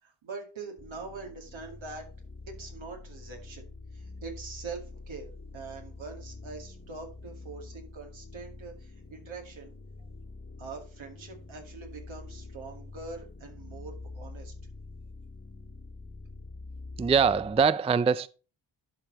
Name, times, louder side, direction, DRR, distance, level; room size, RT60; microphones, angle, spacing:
voice 1, 0.0-2.1 2.5-3.6 3.9-9.7 10.6-14.5, right 4 dB, 75° right, 2.3 m, -43 dB
sound 1, 0.8-17.7, left 3 dB, 30° left, 1.7 m, -46 dB
voice 2, 17.0-18.3, right 6 dB, 15° right, 0.3 m, -23 dB
11.5 x 4.7 x 4.0 m
cardioid pair, 45°, 47 cm